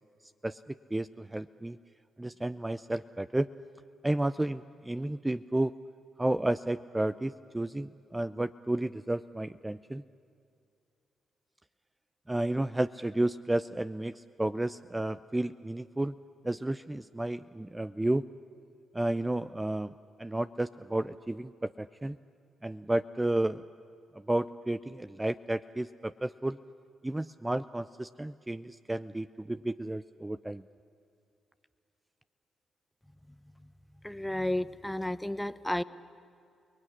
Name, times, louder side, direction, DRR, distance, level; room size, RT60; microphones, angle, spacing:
voice 1, 0.4-1.8 2.2-3.5 4.0-5.7 6.2-10.0 12.3-16.1 16.4-18.2 18.9-22.2 22.6-23.6 24.1-26.6 27.0-30.6, right 1 dB, 15° right, 13 dB, 0.6 m, -32 dB
voice 2, 34.0-35.8, left 1 dB, 10° left, 14 dB, 0.9 m, -32 dB
30.0 x 20.0 x 9.9 m, 2.4 s
hypercardioid pair, 40°, 0 cm